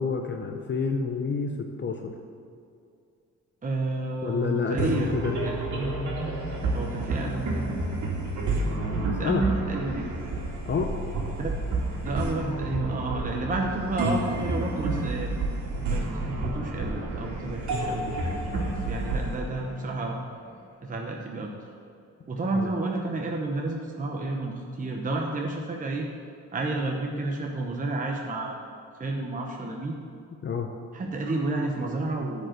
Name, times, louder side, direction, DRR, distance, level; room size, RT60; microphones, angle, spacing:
voice 1, 0.0-2.2 4.2-5.3 8.6-9.4 10.6-10.9 22.5-22.7 30.4-30.7, left 5 dB, 40° left, 4 dB, 0.7 m, -29 dB
voice 2, 3.6-5.1 5.4-5.7 6.7-7.8 9.2-10.1 11.4-11.5 12.0-15.3 15.9-18.5 18.9-20.2 20.8-21.5 22.3-26.1 26.5-28.7 29.0-30.0 30.9-32.5, right 2 dB, 25° right, 0 dB, 0.9 m, -30 dB
sound 1, 4.8-20.4, right 2 dB, 70° right, 2.4 m, -30 dB
9.5 x 5.2 x 7.7 m, 2.4 s
cardioid pair, 90°, 30 cm